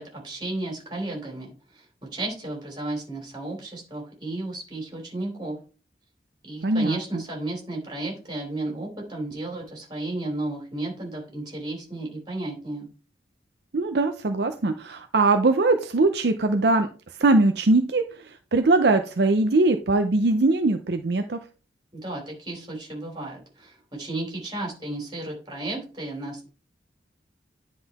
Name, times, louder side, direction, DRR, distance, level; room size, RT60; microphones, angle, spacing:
voice 1, 0.0-1.8 2.1-5.6 6.4-12.9 21.9-26.5, right 2 dB, 25° right, -1 dB, 3.2 m, -33 dB
voice 2, 6.6-7.2 13.7-16.9 17.2-18.0 18.5-21.4, right 2 dB, 60° right, 7 dB, 0.6 m, -21 dB
10.0 x 3.8 x 4.1 m, 0.36 s
head